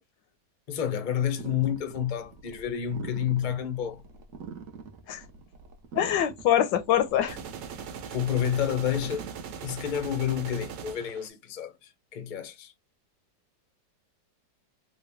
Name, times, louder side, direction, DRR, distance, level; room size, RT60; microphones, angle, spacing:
voice 1, 0.7-4.0 8.1-9.2 9.6-12.7, left 9 dB, 60° left, 0.4 m, -29 dB
sound 1, 1.4-9.6, right 6 dB, 60° right, 0.9 m, -45 dB
voice 2, 5.9-7.4, left 11 dB, 85° left, 1.3 m, -24 dB
sound 2, 7.3-11.3, right 7 dB, 80° right, 1.3 m, -40 dB
3.9 x 2.2 x 3.3 m
omnidirectional pair, 1.9 m